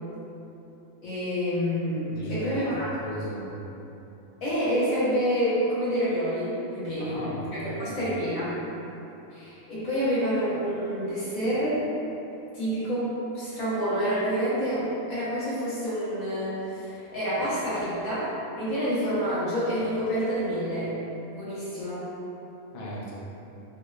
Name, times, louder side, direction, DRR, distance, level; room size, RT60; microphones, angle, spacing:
voice 1, 1.0-2.9 4.4-7.2 7.5-8.5 9.3-11.8 12.5-18.3 18.6-20.9 21.3-22.0, equal, 80° left, -11 dB, 1.6 m, -28 dB
voice 2, 2.2-2.5 3.0-3.5 7.0-7.4 7.6-8.0 22.7-23.1, equal, 55° left, -7 dB, 0.8 m, -36 dB
3.7 x 3.2 x 2.3 m, 3.0 s
omnidirectional pair, 1.4 m